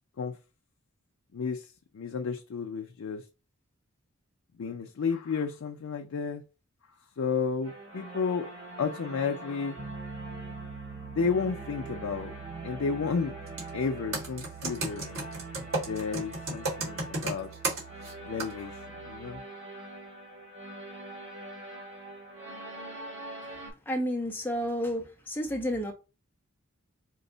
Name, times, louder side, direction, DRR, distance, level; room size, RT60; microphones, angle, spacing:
voice 1, 1.3-3.3 4.6-6.4 7.2-8.5 8.8-9.8 11.0-12.3 12.6-13.3 13.7-15.1 15.9-17.5 18.3-19.4, left 5 dB, 75° left, 0.4 m, -32 dB
sound 1, 7.6-23.7, right 1 dB, 85° right, 2.1 m, -44 dB
Piano, 9.8-19.4, right 6 dB, 40° right, 0.6 m, -46 dB
Computer keyboard, 13.5-13.7 14.1-18.1 18.4-18.5, right 2 dB, 70° right, 1.5 m, -32 dB
voice 2, 23.9-25.9, equal, 10° left, 0.6 m, -31 dB
4.4 x 2.0 x 3.8 m
head